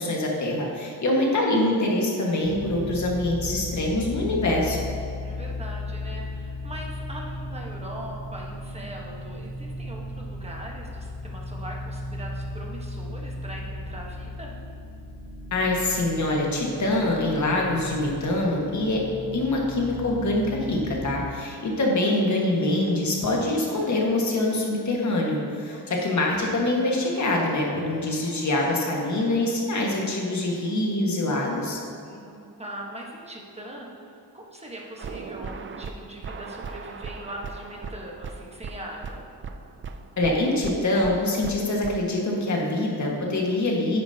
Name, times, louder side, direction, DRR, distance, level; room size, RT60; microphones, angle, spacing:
voice 1, 0.0-4.8 15.5-19.0 19.3-31.8 40.2-44.0, left 1 dB, 45° left, -2 dB, 1.6 m, -24 dB
sound 1, 2.4-21.3, left 1 dB, 90° left, 1.4 m, -36 dB
voice 2, 5.2-14.6 21.7-21.8 25.7-26.3 32.0-39.3, right 1 dB, 15° right, -2 dB, 1.2 m, -41 dB
sound 2, 35.0-42.0, right 5 dB, 30° right, 0.4 m, -38 dB
10.0 x 9.4 x 2.8 m, 2.7 s
wide cardioid pair, 150°, 41 cm